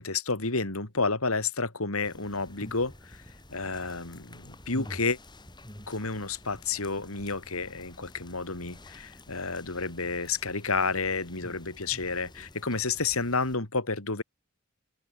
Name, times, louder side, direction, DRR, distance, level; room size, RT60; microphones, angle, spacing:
voice 1, 0.0-3.2 3.5-5.2 5.9-14.2, left 4 dB, 80° left, 3.0 m, -30 dB
sound 1, 2.0-13.6, left 1 dB, 20° left, 6.1 m, -48 dB
open air
head